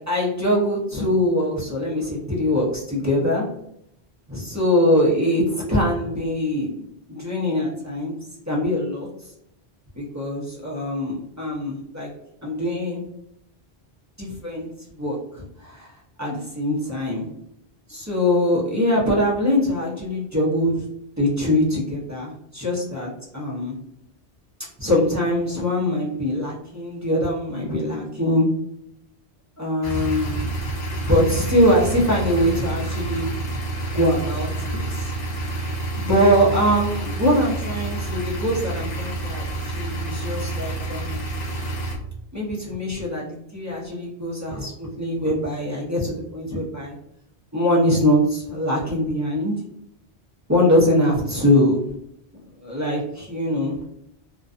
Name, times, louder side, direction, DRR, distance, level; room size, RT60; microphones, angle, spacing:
voice 1, 0.0-3.5 4.3-6.7 7.1-8.2 8.5-9.1 9.9-12.1 12.4-13.0 14.2-14.7 15.0-15.9 16.2-17.3 17.9-20.9 21.2-23.8 24.8-28.5 29.6-30.5 31.1-33.3 33.9-35.1 36.0-41.2 42.3-47.0 47.5-49.5 50.5-51.8 52.6-53.8, equal, 20° right, -6 dB, 0.5 m, -22 dB
sound 1, 29.8-42.0, right 2 dB, 45° left, 0.7 m, -28 dB
2.5 x 2.2 x 2.4 m, 0.77 s
omnidirectional pair, 1.1 m